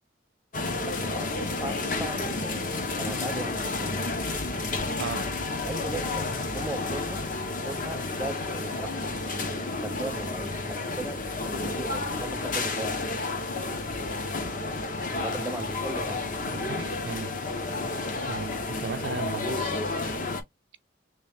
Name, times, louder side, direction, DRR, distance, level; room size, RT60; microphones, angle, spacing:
sound 1, 0.5-20.4, left 3 dB, 45° left, 0.8 m, -31 dB
voice 1, 0.8-4.3 5.7-7.3 7.5-13.1 15.2-16.2, right 2 dB, 10° right, 0.5 m, -38 dB
voice 2, 16.5-17.4 18.3-19.7, right 5 dB, 70° right, 0.5 m, -35 dB
3.2 x 3.1 x 3.4 m
head